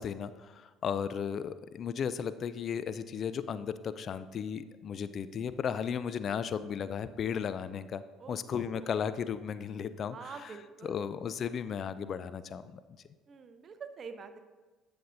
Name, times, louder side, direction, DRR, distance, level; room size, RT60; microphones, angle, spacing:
voice 1, 0.0-10.6 10.8-12.8, left 7 dB, 50° left, 14 dB, 0.3 m, -35 dB
voice 2, 8.2-8.9 10.1-11.0 13.3-14.4, right 5 dB, 45° right, 9 dB, 0.7 m, -46 dB
11.5 x 6.9 x 2.6 m, 1.2 s
hypercardioid pair, 60°, 0 cm